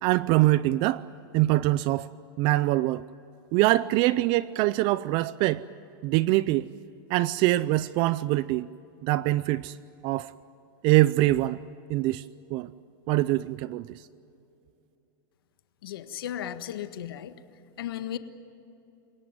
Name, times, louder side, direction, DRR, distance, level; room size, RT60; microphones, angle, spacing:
voice 1, 0.0-1.1 1.3-2.1 2.4-3.0 3.5-5.6 6.0-6.7 7.1-8.7 9.0-9.8 10.0-10.3 10.8-11.6 11.9-12.3 12.5-12.7 13.1-14.0, right 17 dB, 45° right, 0.5 m, -24 dB
voice 2, 15.8-17.3 17.8-18.2, left 10 dB, 90° left, 1.5 m, -35 dB
28.5 x 17.5 x 9.2 m
supercardioid pair, 150°, 12 cm